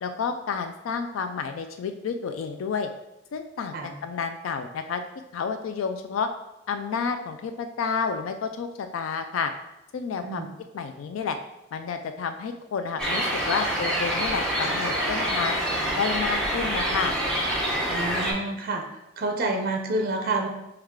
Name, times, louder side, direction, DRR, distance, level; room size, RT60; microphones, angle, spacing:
voice 1, 0.0-2.9 3.3-3.7 4.0-5.0 5.3-6.3 6.7-9.5 9.9-10.5 10.7-11.4 11.7-15.6 16.0-17.1, left 5 dB, 90° left, 7 dB, 0.3 m, -30 dB
sound 1, 13.0-18.3, equal, 5° left, 1.0 m, -26 dB
voice 2, 17.9-18.8 19.2-20.5, right 2 dB, 50° right, 4 dB, 0.5 m, -28 dB
6.3 x 2.4 x 3.6 m, 0.90 s
head